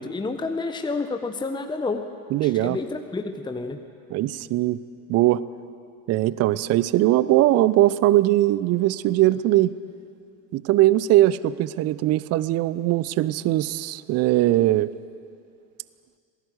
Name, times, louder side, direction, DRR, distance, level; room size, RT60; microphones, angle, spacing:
voice 1, 0.0-2.1 2.4-3.8, left 3 dB, 10° left, 6 dB, 1.2 m, -29 dB
voice 2, 2.3-2.8 4.1-4.8 5.1-5.4 6.1-9.7 10.5-14.9, right 15 dB, 30° right, 18 dB, 0.7 m, -20 dB
27.0 x 18.5 x 8.2 m, 2.4 s
figure-of-eight pair, 75°, 48 cm